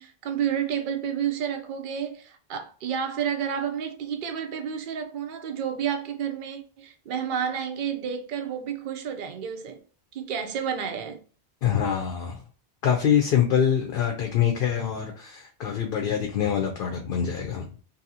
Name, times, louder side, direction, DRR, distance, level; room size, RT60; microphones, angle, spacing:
voice 1, 0.0-9.8 10.1-11.2, right 8 dB, 60° right, 0.7 m, -30 dB
voice 2, 11.6-12.4 12.8-17.7, left 8 dB, 65° left, 0.7 m, -25 dB
2.7 x 2.7 x 2.7 m
omnidirectional pair, 1.1 m